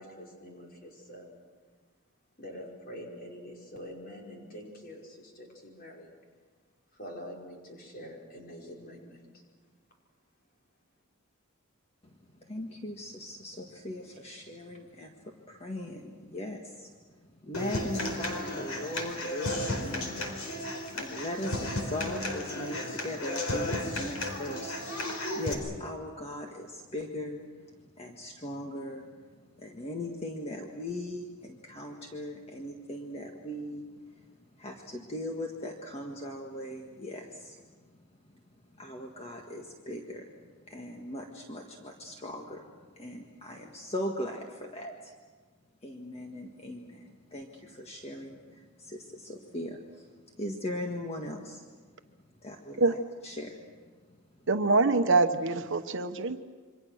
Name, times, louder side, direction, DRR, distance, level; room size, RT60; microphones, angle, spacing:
voice 1, 0.0-1.4 2.4-6.1 6.9-9.4, equal, 45° left, -1 dB, 5.4 m, -45 dB
voice 2, 12.0-20.3 20.5-38.4 38.7-45.1 45.8-51.6 52.4-53.9, left 1 dB, 30° left, 1 dB, 1.7 m, -40 dB
Human voice / Acoustic guitar, 17.5-25.5, left 1 dB, 80° left, 4.6 m, -34 dB
voice 3, 54.5-56.4, right 3 dB, 60° right, 8 dB, 1.1 m, -25 dB
28.0 x 24.5 x 6.4 m, 1.5 s
head